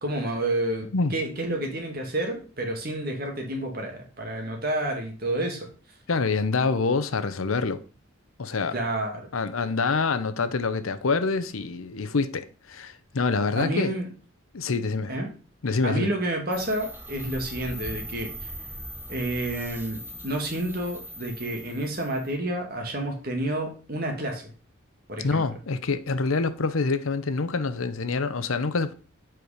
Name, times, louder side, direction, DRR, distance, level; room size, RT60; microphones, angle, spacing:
voice 1, 0.0-5.7 8.7-9.3 13.6-14.1 15.1-15.3 15.8-18.5 19.1-24.5 25.1-25.4, right 1 dB, 45° right, 2.0 m, -29 dB
voice 2, 6.1-7.8 8.4-8.8 9.3-13.9 14.5-15.1 15.6-16.1 25.2-28.9, left 4 dB, 80° left, 0.7 m, -26 dB
sound 1, 16.5-22.3, equal, 10° right, 0.9 m, -40 dB
7.7 x 4.8 x 4.9 m
head